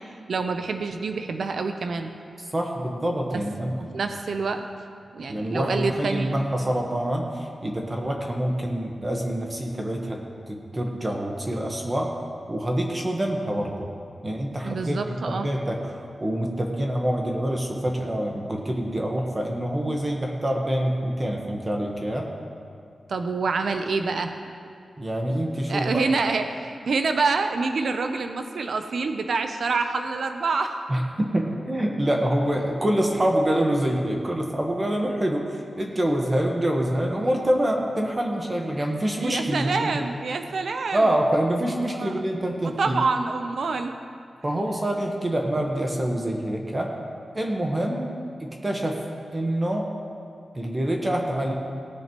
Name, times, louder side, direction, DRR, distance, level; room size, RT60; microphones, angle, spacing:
voice 1, 0.3-2.1 3.3-3.4 3.8-4.6 5.1-6.4 14.6-15.5 23.1-24.3 25.7-30.8 39.2-41.1 41.9-42.1 42.8-44.0, right 4 dB, 70° right, 6 dB, 0.6 m, -26 dB
voice 2, 2.5-3.8 5.3-10.2 10.5-12.1 12.5-13.9 14.2-22.3 25.0-26.0 30.9-40.1 40.9-43.0 44.4-46.9 47.3-48.1 48.4-49.0 49.3-49.9 50.5-51.5, right 1 dB, 25° right, 1 dB, 1.2 m, -26 dB
18.0 x 9.9 x 3.0 m, 2.4 s
wide cardioid pair, 115°, 0 cm